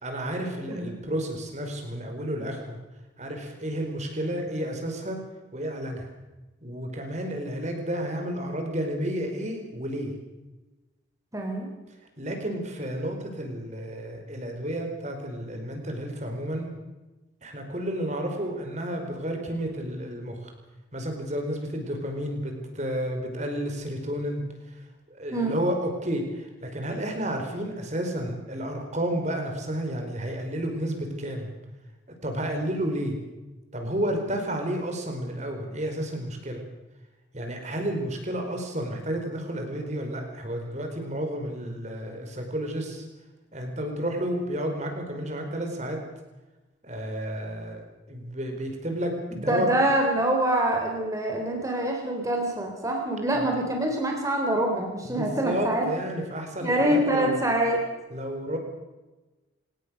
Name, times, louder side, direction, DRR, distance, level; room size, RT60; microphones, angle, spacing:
voice 1, 0.0-2.8 3.2-5.2 5.5-6.1 6.6-10.1 12.2-16.7 17.4-20.5 20.9-24.8 25.1-31.5 32.2-33.2 33.7-36.6 37.3-43.0 43.5-46.0 46.8-49.7 53.3-53.4 55.0-57.4 58.1-58.6, right 1 dB, 35° right, 4 dB, 4.8 m, -31 dB
voice 2, 11.3-11.7 25.3-25.6 49.4-55.9 56.6-57.8, right 1 dB, 15° right, 1 dB, 3.6 m, -25 dB
27.5 x 18.5 x 6.5 m, 1.1 s
head